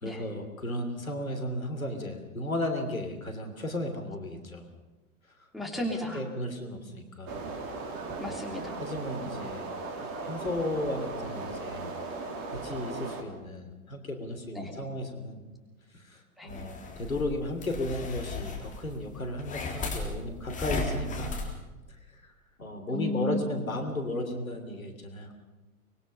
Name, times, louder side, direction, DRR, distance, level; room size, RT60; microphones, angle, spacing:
voice 1, 0.0-4.7 5.4-5.5 6.1-7.4 7.8-8.4 8.8-9.7 10.2-12.0 12.5-15.4 15.9-21.3 22.1-22.2 22.6-25.3, left 1 dB, 75° left, 6 dB, 3.2 m, -35 dB
voice 2, 5.5-6.2 8.2-8.8 14.5-14.7 16.4-16.5 22.9-23.6, left 1 dB, ahead, -1 dB, 3.1 m, -33 dB
sound 1, 7.3-13.2, right 3 dB, 30° right, 2.9 m, -37 dB
sound 2, 16.5-21.5, left 3 dB, 20° left, 3.6 m, -36 dB
24.5 x 20.5 x 5.6 m, 1.1 s
figure-of-eight pair, 100°, 41 cm